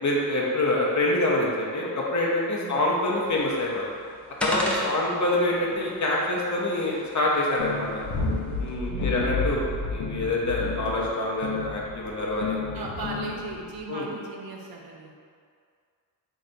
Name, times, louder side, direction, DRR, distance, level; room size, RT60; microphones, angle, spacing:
voice 1, 0.0-3.9 4.4-7.9 8.6-12.8 13.9-14.1, left 1 dB, 45° left, -4 dB, 0.8 m, -26 dB
voice 2, 2.6-2.9 4.9-5.3 8.9-9.9 12.7-15.2, right 3 dB, 60° right, -1 dB, 0.7 m, -38 dB
sound 1, 3.2-8.7, equal, 5° left, 0.5 m, -37 dB
sound 2, 7.6-13.8, left 4 dB, 85° left, 0.6 m, -31 dB
3.2 x 2.5 x 4.0 m, 2.2 s
cardioid pair, 85°, 42 cm